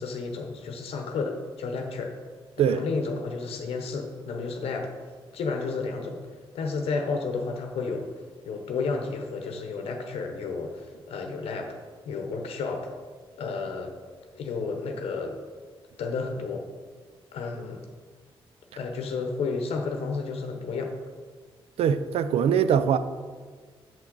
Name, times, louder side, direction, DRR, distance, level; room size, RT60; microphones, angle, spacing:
voice 1, 0.0-2.1 2.7-4.9 5.3-6.2 6.5-8.1 8.4-11.7 12.0-12.9 13.4-13.9 14.3-15.3 16.0-16.7 17.3-17.8 18.8-20.9, left 4 dB, 85° left, 0.8 m, -31 dB
voice 2, 21.8-23.0, right 8 dB, 85° right, 0.4 m, -22 dB
6.9 x 6.0 x 3.8 m
cardioid pair, 100°, 10 cm